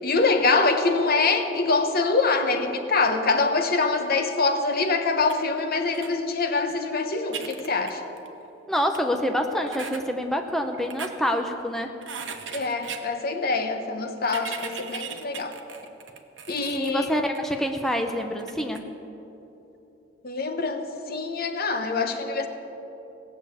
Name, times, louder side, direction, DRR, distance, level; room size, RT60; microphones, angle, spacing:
voice 1, 0.0-8.0 12.5-15.5 16.5-17.1 20.2-22.5, left 3 dB, 55° left, 6 dB, 1.1 m, -24 dB
sound 1, 5.2-5.4 5.9-6.1 6.7-6.8 7.1-8.4 8.9-9.0 9.7-10.0 10.7-11.1 12.0-13.0 14.2-16.9 17.3-17.4 18.4-18.8, right 6 dB, 70° right, 1.0 m, -37 dB
voice 2, 8.7-11.9 16.7-18.8, equal, ahead, 3 dB, 0.7 m, -26 dB
17.5 x 7.1 x 8.4 m, 3.0 s
head